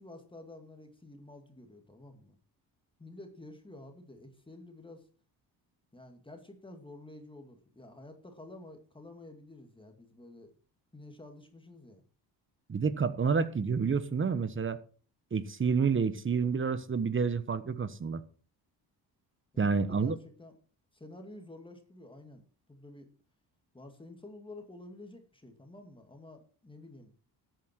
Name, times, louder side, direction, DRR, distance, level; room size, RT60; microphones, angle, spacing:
voice 1, 0.0-2.4 3.0-5.1 5.9-10.5 10.9-12.0 19.5-20.5 20.9-23.1 23.7-27.1, left 2 dB, 15° left, 5 dB, 2.3 m, -50 dB
voice 2, 12.7-14.8 15.3-18.2 19.6-20.2, right 5 dB, 30° right, 14 dB, 1.2 m, -29 dB
13.0 x 9.1 x 4.6 m, 0.40 s
cardioid pair, 95°, 39 cm